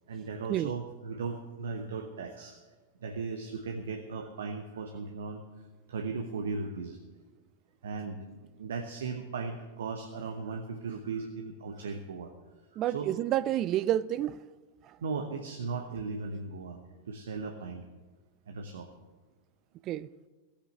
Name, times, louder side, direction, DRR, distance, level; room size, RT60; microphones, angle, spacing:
voice 1, 0.1-2.6 3.0-5.4 5.9-7.0 7.8-8.2 8.6-12.3 12.7-13.1 15.0-16.8 17.1-17.8 18.5-18.9, right 4 dB, 65° right, 5 dB, 1.1 m, -37 dB
voice 2, 12.8-14.4 19.9-20.1, right 12 dB, 35° right, 18 dB, 0.3 m, -29 dB
15.5 x 8.4 x 7.7 m, 1.3 s
figure-of-eight pair, 90°, 0 cm